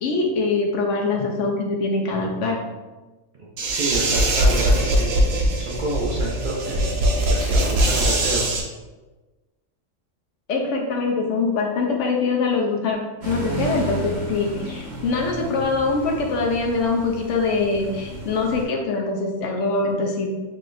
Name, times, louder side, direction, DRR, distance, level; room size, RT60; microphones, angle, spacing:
voice 1, 0.0-2.6 10.5-13.0 13.2-20.3, left 3 dB, 70° left, 1 dB, 0.9 m, -23 dB
voice 2, 3.3-7.0 7.3-8.5, right 2 dB, 55° right, -5 dB, 0.5 m, -29 dB
sound 1, 3.6-8.6, right 1 dB, 90° right, 1.1 m, -21 dB
sound 2, 13.2-18.6, right 2 dB, 70° right, 1.4 m, -32 dB
3.7 x 3.3 x 2.5 m, 1.2 s
omnidirectional pair, 1.4 m